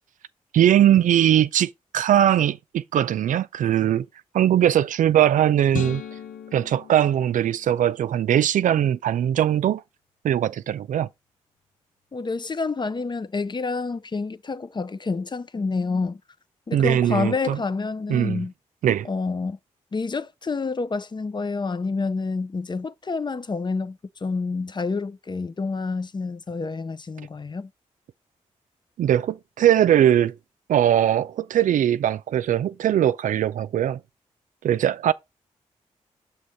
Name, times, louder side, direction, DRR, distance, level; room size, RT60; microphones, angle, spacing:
voice 1, 0.5-4.1 4.3-6.0 6.5-9.8 10.2-11.1 16.7-17.6 18.1-18.4 18.8-19.1 29.0-30.3 30.7-34.0 34.6-35.1, right 11 dB, 70° right, 0.4 m, -20 dB
sound 1, 5.7-8.1, left 8 dB, 75° left, 0.8 m, -37 dB
voice 2, 12.1-16.2 16.7-18.5 19.0-19.6 19.9-27.7, left 4 dB, 35° left, 0.5 m, -28 dB
6.2 x 3.0 x 5.6 m
supercardioid pair, 40°, 14 cm